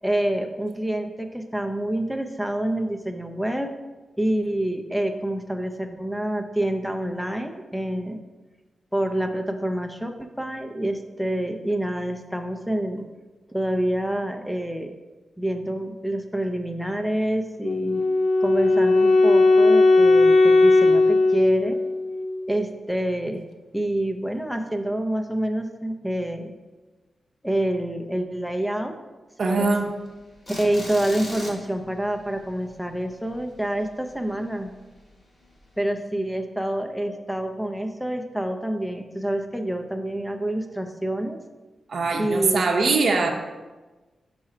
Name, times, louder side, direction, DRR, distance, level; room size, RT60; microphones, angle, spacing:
voice 1, 0.0-3.7 4.2-8.2 8.9-13.1 13.5-15.0 15.4-18.0 18.4-21.8 22.5-23.5 23.7-26.5 27.4-29.0 29.4-29.7 30.5-34.7 35.8-41.4 42.1-42.6, right 1 dB, ahead, 5 dB, 0.5 m, -27 dB
Wind instrument woodwind instrument, 17.6-22.7, left 2 dB, 65° left, 0.5 m, -18 dB
voice 2, 29.4-30.0 41.9-43.3, right 3 dB, 55° right, 1 dB, 0.7 m, -22 dB
sound 1, 29.6-34.3 34.6-34.8 35.1-35.2 35.6-35.8, left 1 dB, 35° left, 1.6 m, -39 dB
6.1 x 4.3 x 4.8 m, 1.2 s
wide cardioid pair, 140°, 0 cm